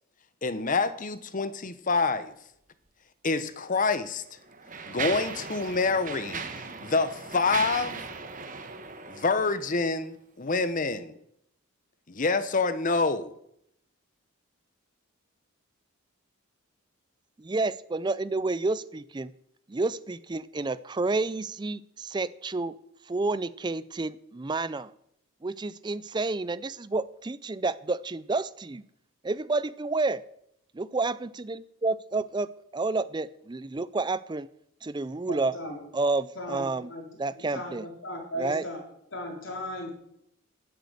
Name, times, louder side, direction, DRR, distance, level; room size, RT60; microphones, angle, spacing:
voice 1, 0.4-2.3 3.2-4.2 4.9-6.4 6.8-8.0 9.1-11.1 12.1-13.3, left 3 dB, 35° left, 13 dB, 0.8 m, -27 dB
Mechanisms, 3.3-3.5 4.2-10.0, right 5 dB, 40° right, 1.1 m, -38 dB
voice 2, 17.4-19.3 19.7-22.7 23.1-24.9 25.4-28.8 29.2-30.2 30.7-31.1 31.5-31.6 31.8-34.5 34.8-35.5 35.9-36.9 37.2-37.9 38.4-38.6, right 3 dB, 20° right, 17 dB, 0.4 m, -30 dB
voice 3, 35.3-35.8 36.3-38.8 39.1-39.9, equal, 60° left, 0 dB, 3.9 m, -37 dB
10.5 x 8.4 x 7.9 m, 0.75 s
head